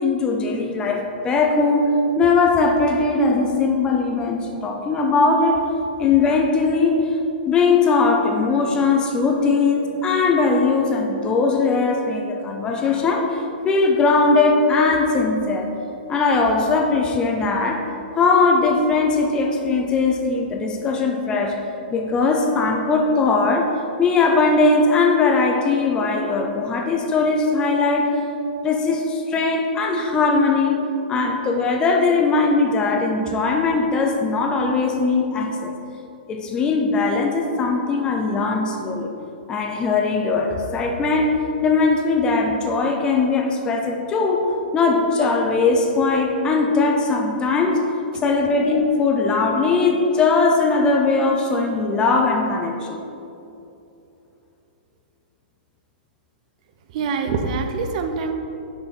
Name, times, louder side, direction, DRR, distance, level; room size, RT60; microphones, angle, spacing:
voice 1, 0.0-1.9 2.2-5.6 6.0-7.0 7.5-15.7 16.1-17.8 18.2-21.6 21.9-23.7 24.0-28.1 28.6-30.8 31.1-35.8 36.3-39.1 39.5-47.8 48.2-53.0, left 3 dB, 15° left, 3 dB, 0.5 m, -20 dB
voice 2, 56.9-58.3, right 4 dB, 45° right, 6 dB, 0.5 m, -25 dB
5.9 x 5.5 x 4.1 m, 2.7 s
hypercardioid pair, 155°, 6 cm